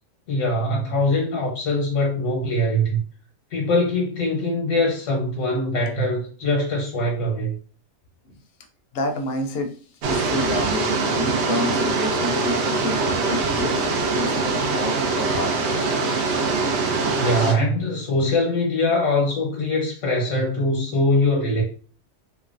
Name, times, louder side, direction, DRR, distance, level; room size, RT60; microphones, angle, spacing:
voice 1, 0.3-3.0 3.5-7.5 17.2-21.6, left 1 dB, 90° left, -2 dB, 1.3 m, -22 dB
voice 2, 8.9-9.7 10.1-13.8 14.1-16.0, left 2 dB, 65° left, 4 dB, 0.7 m, -29 dB
sound 1, 10.0-17.5, right 3 dB, 70° right, 0.8 m, -23 dB
3.1 x 2.1 x 2.4 m, 0.41 s
omnidirectional pair, 1.3 m